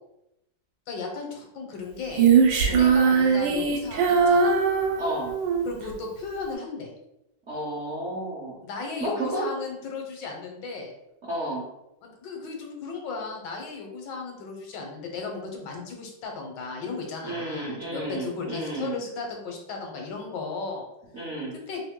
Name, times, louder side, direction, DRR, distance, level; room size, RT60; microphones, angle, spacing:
voice 1, 0.9-2.3 2.5-4.5 5.6-6.9 8.6-10.9 12.0-20.8 21.5-21.8, left 4 dB, 70° left, 2 dB, 1.4 m, -35 dB
Female singing, 2.1-5.7, right 6 dB, 80° right, 1.4 m, -20 dB
voice 2, 5.0-5.3 7.5-8.6 9.0-9.5 11.2-11.6 17.2-19.0 21.1-21.5, right 1 dB, 60° right, -5 dB, 0.7 m, -32 dB
3.3 x 2.9 x 3.6 m, 0.87 s
omnidirectional pair, 2.1 m